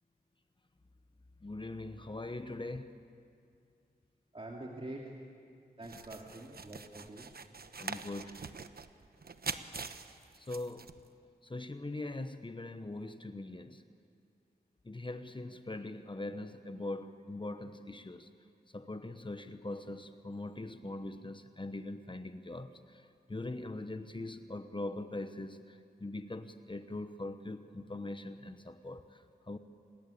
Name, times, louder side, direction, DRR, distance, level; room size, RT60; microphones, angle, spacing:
voice 1, 1.4-3.0 7.8-8.4 10.4-10.9 11.4-13.8 14.8-18.3 18.7-23.0 23.3-29.2 29.5-29.6, left 2 dB, 30° left, 9 dB, 1.1 m, -42 dB
voice 2, 4.3-5.1 5.8-7.3, right 1 dB, 35° right, -2 dB, 2.8 m, -45 dB
sound 1, 5.8-11.1, right 5 dB, 70° right, 1.0 m, -44 dB
28.0 x 20.5 x 8.6 m, 2.3 s
wide cardioid pair, 85°, 17 cm